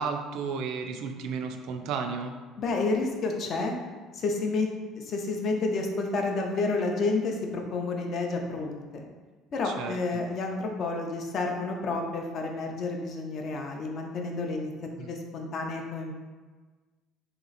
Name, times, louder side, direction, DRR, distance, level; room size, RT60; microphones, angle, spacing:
voice 1, 0.0-2.3 9.6-10.0 15.0-15.1, right 5 dB, 60° right, 5 dB, 0.3 m, -33 dB
voice 2, 2.6-3.7 4.1-4.7 5.0-9.0 9.5-14.7 15.0-16.1, left 3 dB, 35° left, 2 dB, 0.5 m, -30 dB
3.2 x 2.9 x 3.9 m, 1.4 s
cardioid pair, 175°, 0 cm